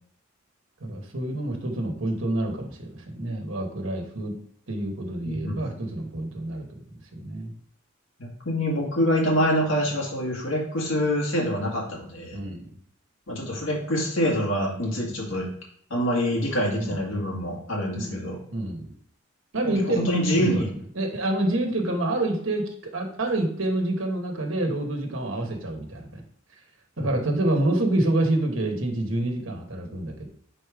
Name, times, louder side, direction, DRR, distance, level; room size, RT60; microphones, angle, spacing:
voice 1, 0.8-4.3 4.7-6.8 7.1-7.5 12.3-12.7 16.8-17.0 17.9-18.2 18.5-18.9 19.5-20.1 20.3-20.6 20.9-26.2 27.0-30.3, right 1 dB, 75° right, 3 dB, 1.2 m, -27 dB
voice 2, 5.2-5.6 8.2-12.4 13.3-15.5 15.9-18.4 19.6-20.7 27.0-27.1, equal, 70° left, -3 dB, 2.1 m, -26 dB
4.7 x 4.1 x 5.0 m, 0.66 s
head